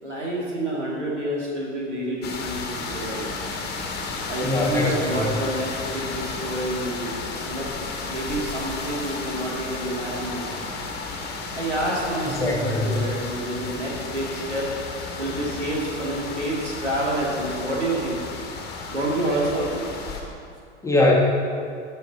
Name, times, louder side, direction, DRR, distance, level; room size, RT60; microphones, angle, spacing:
voice 1, 0.0-3.2 4.3-7.1 7.5-7.7 8.1-10.5 11.5-14.7 15.2-18.2 18.9-19.9, right 1 dB, 85° right, -4 dB, 2.1 m, -28 dB
sound 1, 2.2-20.2, left 4 dB, 30° left, 1.5 m, -33 dB
voice 2, 4.4-5.3 12.4-12.9 20.8-21.1, left 2 dB, 10° left, -3 dB, 1.4 m, -21 dB
12.5 x 5.5 x 4.0 m, 2.3 s
figure-of-eight pair, 90°, 35 cm